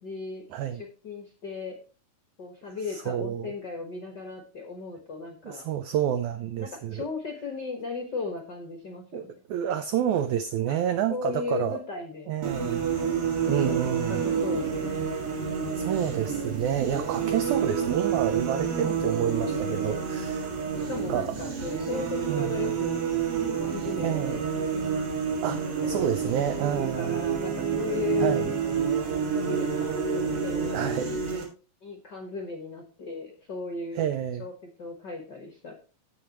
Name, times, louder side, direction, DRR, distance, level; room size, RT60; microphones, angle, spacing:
voice 1, 0.0-0.4 0.7-1.8 2.4-5.6 6.6-9.3 10.7-10.8 11.1-12.3 13.2-15.1 20.9-23.0 23.3-24.5 25.8-26.1 26.8-28.5 29.3-31.0 31.8-34.1 34.4-34.5 34.8-35.7, left 4 dB, 55° left, 1.2 m, -36 dB
voice 2, 0.5-0.8 2.9-3.5 5.5-7.0 9.1-9.2 9.5-11.8 12.3-12.9 13.5-14.3 15.8-20.5 21.1-21.3 22.3-22.6 24.0-24.5 25.4-27.2 28.2-28.5 30.7-31.1 34.0-34.4, right 9 dB, 85° right, 1.7 m, -29 dB
sound 1, 12.4-31.4, right 6 dB, 60° right, 3.6 m, -29 dB
16.5 x 5.5 x 3.0 m
omnidirectional pair, 4.1 m